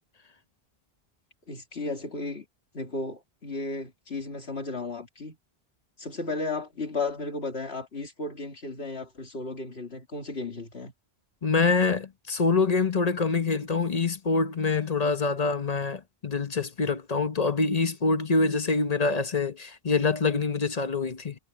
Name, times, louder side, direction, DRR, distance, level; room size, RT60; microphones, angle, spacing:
voice 1, 1.5-2.5 2.7-5.4 6.0-10.9, left 3 dB, 80° left, 2.8 m, -34 dB
voice 2, 11.4-21.3, left 4 dB, 40° left, 1.0 m, -25 dB
omnidirectional pair, 1.0 m